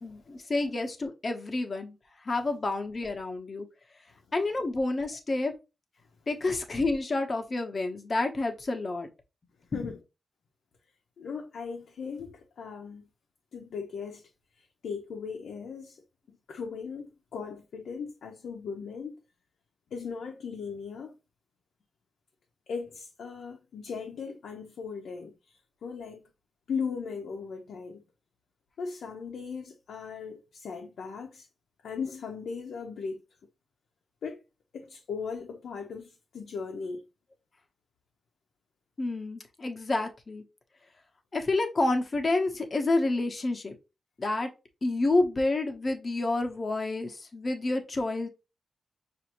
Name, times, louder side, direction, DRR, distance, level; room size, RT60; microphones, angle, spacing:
voice 1, 0.0-2.0 2.2-3.7 4.3-5.5 6.3-9.1 9.7-9.9 39.0-40.4 41.3-43.8 44.2-44.5 44.8-48.3, left 2 dB, 30° left, 0.8 m, -29 dB
voice 2, 11.2-13.1 13.5-14.2 14.6-16.0 16.3-19.2 19.9-21.1 22.7-26.2 26.7-28.0 28.8-31.5 31.8-33.2 34.2-34.4 34.7-37.1, left 5 dB, 80° left, 0.7 m, -38 dB
6.1 x 2.6 x 2.9 m
wide cardioid pair, 140°, 0 cm